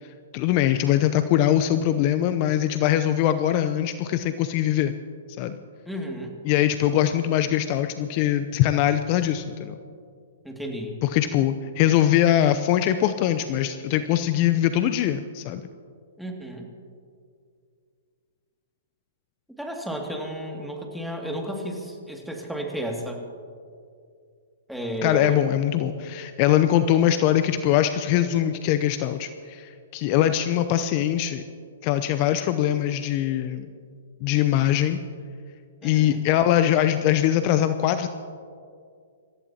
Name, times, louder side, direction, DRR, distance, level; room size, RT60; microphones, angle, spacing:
voice 1, 0.3-4.9 5.4-5.6 6.4-9.8 11.0-15.6 25.0-31.4 31.8-33.7 34.2-35.0 35.8-38.1, left 11 dB, 40° left, 10 dB, 0.6 m, -22 dB
voice 2, 5.9-6.3 10.4-11.0 16.2-16.7 19.6-23.2 24.7-25.4 35.8-36.2, equal, ahead, 0 dB, 2.4 m, -32 dB
26.5 x 15.0 x 2.9 m, 2.3 s
hypercardioid pair, 120°, 0 cm